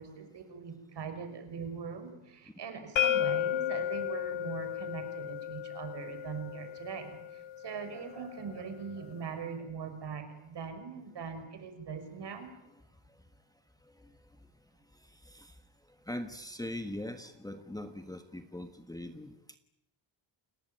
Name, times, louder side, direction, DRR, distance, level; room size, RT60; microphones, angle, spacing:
voice 1, 0.0-12.5, right 6 dB, 55° right, 7 dB, 5.8 m, -41 dB
sound 1, 3.0-8.8, left 10 dB, 65° left, 1.1 m, -34 dB
voice 2, 16.1-19.6, left 1 dB, 10° left, 8 dB, 1.4 m, -41 dB
29.5 x 19.5 x 9.1 m, 0.85 s
cardioid pair, 140°, 48 cm